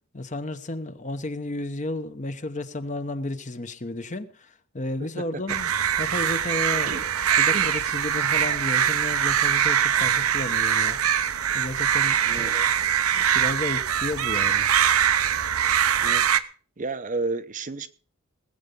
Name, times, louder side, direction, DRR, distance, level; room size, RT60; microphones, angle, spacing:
voice 1, 0.1-5.7 6.0-11.3 11.5-12.7 13.2-14.7, left 2 dB, 35° left, 1.0 m, -33 dB
sound 1, 5.5-16.4, right 9 dB, 80° right, 0.8 m, -23 dB
voice 2, 6.7-7.1 7.5-7.7 12.2-12.5 16.0-16.2 16.8-17.9, right 3 dB, 35° right, 0.7 m, -31 dB
19.5 x 8.0 x 5.2 m
head